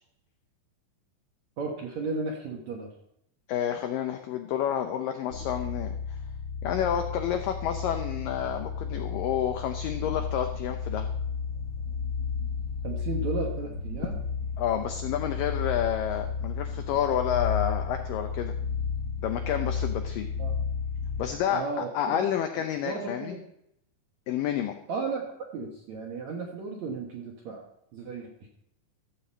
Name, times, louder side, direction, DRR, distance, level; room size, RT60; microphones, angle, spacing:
voice 1, 1.6-2.9 12.8-14.2 20.4-20.5 21.5-22.3 22.8-23.4 24.9-27.6 27.9-28.5, right 4 dB, 65° right, 0 dB, 1.9 m, -34 dB
voice 2, 3.5-6.2 6.6-11.1 14.6-18.5 19.2-20.3 21.2-23.4 24.3-24.7, left 9 dB, 90° left, 6 dB, 1.9 m, -29 dB
sound 1, 5.3-21.4, left 6 dB, 45° left, 1.8 m, -33 dB
sound 2, 9.9-21.6, right 6 dB, 80° right, 1.8 m, -50 dB
14.5 x 5.0 x 7.2 m, 0.77 s
omnidirectional pair, 5.0 m